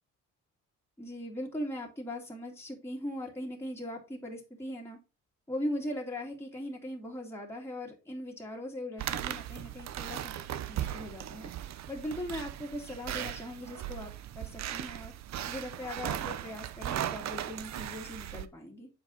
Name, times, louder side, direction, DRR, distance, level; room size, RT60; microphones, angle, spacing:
voice 1, 1.0-5.0 5.5-10.3 10.7-11.5 11.9-14.1 14.4-15.1 15.5-18.9, left 1 dB, 10° left, -2 dB, 2.2 m, -39 dB
sound 1, 9.0-18.5, right 11 dB, 65° right, 0.7 m, -38 dB
7.2 x 5.0 x 3.9 m, 0.28 s
cardioid pair, 90°, 30 cm